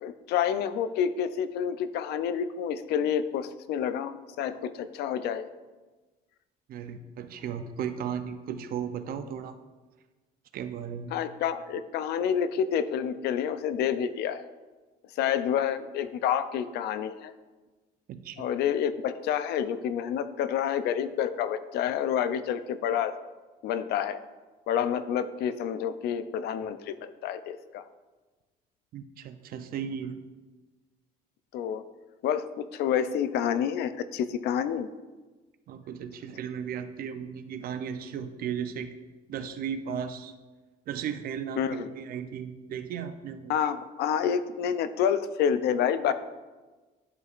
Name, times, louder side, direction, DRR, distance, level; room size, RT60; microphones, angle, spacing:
voice 1, 0.0-5.5 11.1-14.4 15.2-17.3 18.4-23.1 23.6-24.2 24.7-27.8 31.5-31.8 32.2-34.9 41.6-41.9 43.5-46.1, left 8 dB, 75° left, 12 dB, 0.4 m, -28 dB
voice 2, 6.7-9.6 10.5-11.1 18.1-18.5 28.9-30.2 35.7-38.9 39.3-40.3 40.9-43.6 46.1-46.2, right 8 dB, 60° right, 9 dB, 0.6 m, -35 dB
11.0 x 4.8 x 2.5 m, 1.3 s
cardioid pair, 110°, 17 cm